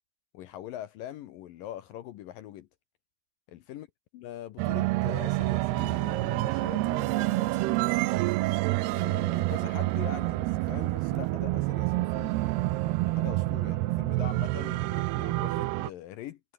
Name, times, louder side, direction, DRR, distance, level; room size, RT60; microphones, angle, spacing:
voice 1, 0.3-2.7 3.5-3.9 4.1-7.8 8.8-16.4, left 12 dB, 70° left, 2.4 m, -43 dB
sound 1, 4.6-15.9, right 20 dB, 90° right, 2.7 m, -28 dB
sound 2, 6.7-11.4, right 7 dB, 50° right, 4.0 m, -57 dB
omnidirectional pair, 4.6 m